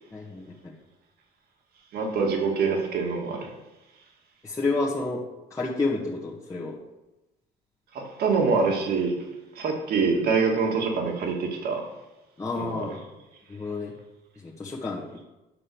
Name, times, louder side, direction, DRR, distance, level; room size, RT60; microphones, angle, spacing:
voice 1, 0.1-0.7 4.4-5.2 5.5-6.8 12.4-13.0 13.5-13.9 14.4-15.2, left 3 dB, 20° left, -6 dB, 1.6 m, -30 dB
voice 2, 1.9-3.5 7.9-9.1 9.6-11.8 12.6-12.9, right 4 dB, 65° right, 2 dB, 2.3 m, -25 dB
9.9 x 5.5 x 7.0 m, 1.0 s
cardioid pair, 110°, 17 cm